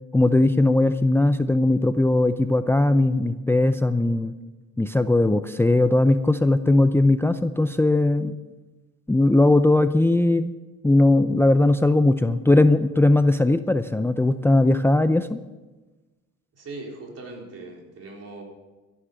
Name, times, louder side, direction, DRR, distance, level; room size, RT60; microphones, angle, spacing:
voice 1, 0.1-4.3 4.8-8.4 9.1-10.5 10.8-15.4, left 2 dB, 10° left, 11 dB, 0.6 m, -19 dB
voice 2, 16.5-18.4, right 2 dB, 55° right, 0 dB, 4.4 m, -39 dB
13.5 x 11.5 x 6.8 m, 1.2 s
cardioid pair, 90°, 30 cm